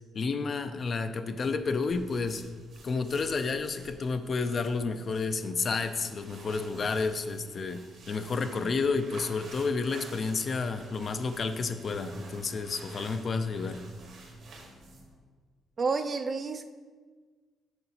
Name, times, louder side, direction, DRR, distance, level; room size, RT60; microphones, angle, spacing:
voice 1, 0.1-2.4 2.8-13.8, left 4 dB, 45° left, 9 dB, 0.4 m, -31 dB
sound 1, 1.6-15.2, right 2 dB, 75° right, 1.6 m, -50 dB
voice 2, 15.8-16.7, right 4 dB, 40° right, 8 dB, 0.5 m, -30 dB
7.8 x 5.8 x 2.8 m, 1.5 s
cardioid pair, 90°, 0 cm